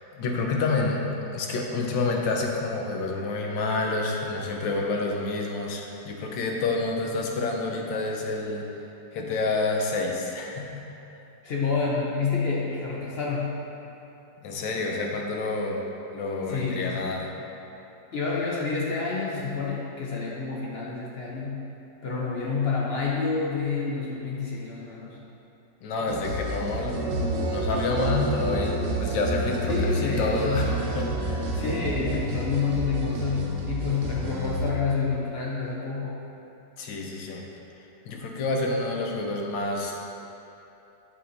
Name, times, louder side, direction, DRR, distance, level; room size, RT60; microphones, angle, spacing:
voice 1, 0.2-1.0 1.3-8.6 9.1-10.9 14.4-15.8 16.1-17.3 25.8-27.0 27.5-31.5 36.8-37.4 38.1-39.9, left 3 dB, 85° left, 0 dB, 1.5 m, -28 dB
voice 2, 11.4-13.6 16.5-17.1 18.1-21.7 22.0-25.2 29.7-30.7 31.5-36.2, left 4 dB, 65° left, -4 dB, 0.6 m, -28 dB
sound 1, 26.1-34.7, right 1 dB, 80° right, 1.3 m, -32 dB
sound 2, 26.9-32.2, right 1 dB, 60° right, 0.9 m, -31 dB
7.9 x 6.5 x 2.6 m, 2.9 s
omnidirectional pair, 2.0 m